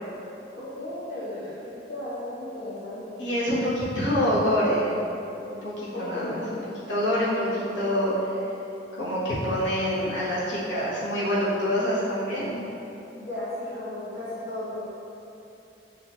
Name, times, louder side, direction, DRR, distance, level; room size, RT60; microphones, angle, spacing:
voice 1, 0.5-3.3 5.9-6.7 13.2-14.8, left 1 dB, 60° left, -11 dB, 0.8 m, -35 dB
voice 2, 3.2-4.9 5.4-6.4 6.9-8.1 8.9-12.5, equal, 85° left, -9 dB, 1.2 m, -26 dB
6.2 x 2.4 x 2.9 m, 2.9 s
head